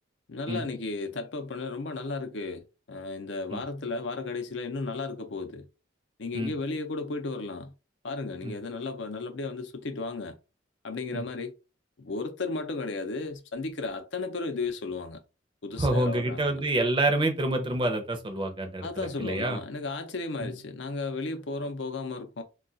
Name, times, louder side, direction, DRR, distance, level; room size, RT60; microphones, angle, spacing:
voice 1, 0.3-5.7 6.2-7.7 8.0-10.4 10.8-11.5 12.0-15.2 15.6-16.6 18.8-22.4, left 3 dB, 65° left, 0.5 m, -34 dB
voice 2, 15.8-19.6 20.4-20.5, right 2 dB, 25° right, 0.5 m, -27 dB
2.3 x 2.3 x 3.8 m
head